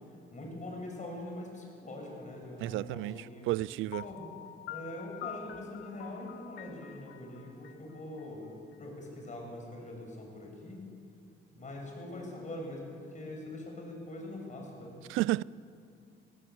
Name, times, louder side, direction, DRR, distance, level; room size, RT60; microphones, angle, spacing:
voice 1, 0.3-3.5 4.0-8.5 8.8-10.8 11.5-15.0, left 1 dB, 40° left, 7.7 m, -43 dB
voice 2, 2.6-4.1 15.1-15.4, right 17 dB, 85° right, 0.4 m, -32 dB
Piano, 3.9-8.8, left 11 dB, 85° left, 1.0 m, -46 dB
20.0 x 17.5 x 8.7 m
cardioid pair, 90°, 20 cm